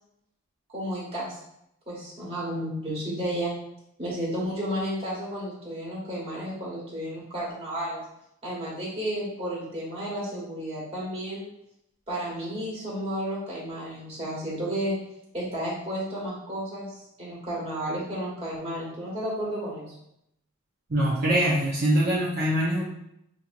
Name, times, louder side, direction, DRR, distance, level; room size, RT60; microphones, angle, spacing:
voice 1, 0.7-1.4 1.9-3.5 4.0-8.0 8.4-11.5 12.1-15.0 15.3-19.9, equal, 25° right, -6 dB, 1.5 m, -32 dB
voice 2, 20.9-22.8, right 1 dB, 45° right, -7 dB, 0.7 m, -23 dB
5.5 x 2.8 x 2.5 m, 0.78 s
head